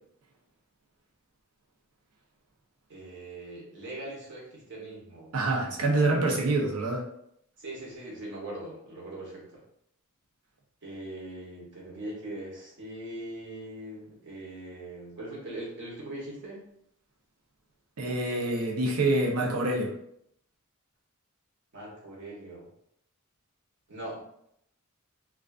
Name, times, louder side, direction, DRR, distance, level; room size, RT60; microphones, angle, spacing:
voice 1, 2.9-5.9 7.6-9.6 10.8-16.7 21.7-22.7 23.9-24.2, right 1 dB, 55° right, -4 dB, 0.9 m, -41 dB
voice 2, 5.3-7.0 18.0-19.9, right 2 dB, 85° right, 0 dB, 0.6 m, -26 dB
2.4 x 2.3 x 2.3 m, 0.74 s
head